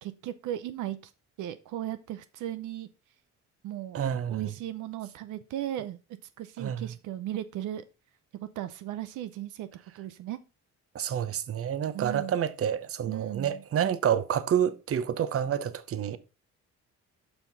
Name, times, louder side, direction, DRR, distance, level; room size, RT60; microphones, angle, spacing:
voice 1, 0.0-1.1 1.4-2.9 3.6-6.0 6.4-7.8 8.4-9.7 9.9-10.4 11.9-12.4 13.1-13.6, right 12 dB, 85° right, 0.6 m, -36 dB
voice 2, 3.9-4.5 6.6-6.9 10.9-16.2, right 9 dB, 50° right, 0.8 m, -28 dB
7.0 x 5.7 x 4.0 m
cardioid pair, 90°, 30 cm